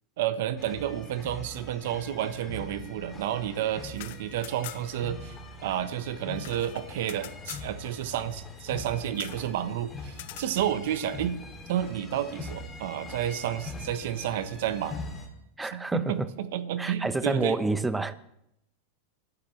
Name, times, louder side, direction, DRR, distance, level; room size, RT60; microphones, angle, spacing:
voice 1, 0.2-5.4 5.6-11.4 11.7-15.0 15.7-17.6, right 11 dB, 70° right, 12 dB, 1.1 m, -31 dB
sound 1, 0.6-15.3, left 2 dB, 15° left, 2.6 m, -42 dB
sound 2, 3.9-5.1 5.3-5.4 5.7-7.7 9.1-9.5 10.1-10.5, left 14 dB, 70° left, 0.7 m, -44 dB
voice 2, 15.6-16.3 16.8-18.1, right 2 dB, 10° right, 13 dB, 0.7 m, -28 dB
26.5 x 12.0 x 3.3 m, 0.80 s
supercardioid pair, 145°, 0 cm